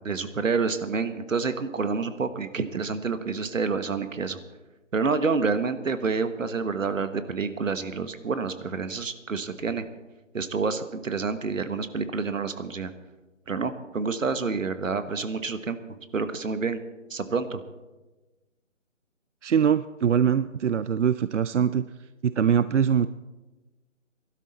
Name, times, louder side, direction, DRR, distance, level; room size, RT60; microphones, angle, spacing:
voice 1, 0.0-4.4 4.9-9.8 10.3-12.9 13.5-15.8 16.1-16.8 17.1-17.6, right 4 dB, 85° right, 11 dB, 1.3 m, -28 dB
voice 2, 19.4-21.8 22.2-23.1, right 8 dB, 70° right, 14 dB, 0.5 m, -22 dB
19.0 x 12.0 x 4.1 m, 1.2 s
hypercardioid pair, 175°, 38 cm